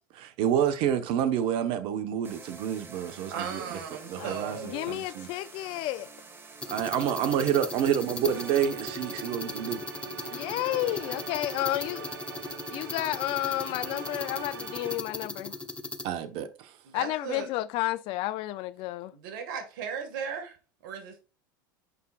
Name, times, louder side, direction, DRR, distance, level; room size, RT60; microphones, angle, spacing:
voice 1, 0.4-3.6 4.1-4.6 4.9-5.3 6.7-9.8 16.0-16.7, right 9 dB, 55° right, 1.2 m, -28 dB
sound 1, 2.2-8.6, right 3 dB, 20° right, 1.6 m, -48 dB
voice 2, 3.3-4.9 16.8-17.5 19.1-20.6 20.8-21.2, right 7 dB, 70° right, 1.9 m, -37 dB
voice 3, 4.6-6.1 10.3-12.1 12.7-15.5 16.9-19.1, left 16 dB, 55° left, 0.4 m, -31 dB
sound 2, 6.6-16.1, left 3 dB, 10° left, 0.9 m, -38 dB
sound 3, 8.2-15.0, right 6 dB, 85° right, 1.3 m, -42 dB
8.3 x 5.6 x 2.5 m
hypercardioid pair, 95°, 11 cm